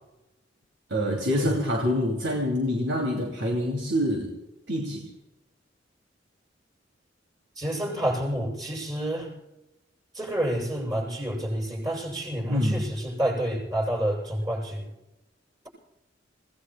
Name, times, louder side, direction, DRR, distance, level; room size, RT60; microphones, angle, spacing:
voice 1, 0.9-4.3 4.7-5.1 12.5-12.9, equal, 90° right, 0 dB, 2.7 m, -26 dB
voice 2, 7.6-9.3 10.1-14.9, right 1 dB, 25° right, -2 dB, 6.9 m, -29 dB
29.0 x 18.0 x 2.3 m, 0.98 s
head